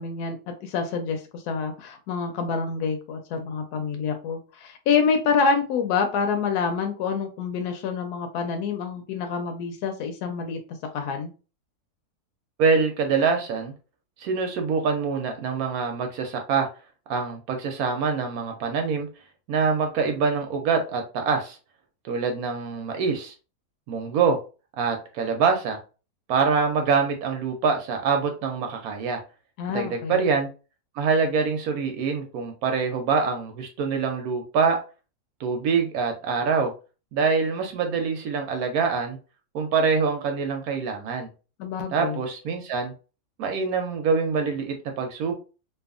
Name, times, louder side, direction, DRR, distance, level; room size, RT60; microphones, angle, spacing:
voice 1, 0.0-10.6 10.9-11.3 29.6-30.2 41.6-42.2, left 5 dB, 80° left, 5 dB, 1.1 m, -27 dB
voice 2, 12.6-13.7 14.2-16.7 17.1-19.1 19.5-21.6 22.0-23.3 23.9-24.4 24.8-25.8 26.3-29.2 29.7-30.5 31.0-34.8 35.4-36.7 37.1-39.2 39.5-41.3 41.9-42.9 43.4-45.3, right 5 dB, 75° right, 4 dB, 1.0 m, -25 dB
2.7 x 2.3 x 2.4 m, 0.33 s
omnidirectional pair, 1.6 m